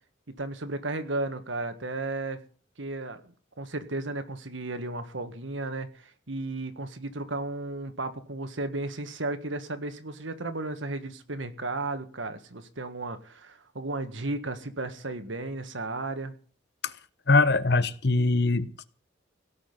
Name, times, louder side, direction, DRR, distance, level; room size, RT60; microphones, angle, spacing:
voice 1, 0.3-2.4 2.8-16.3, right 2 dB, 80° right, 1.7 m, -34 dB
voice 2, 17.3-18.8, left 3 dB, 60° left, 1.0 m, -22 dB
17.0 x 6.4 x 9.5 m
head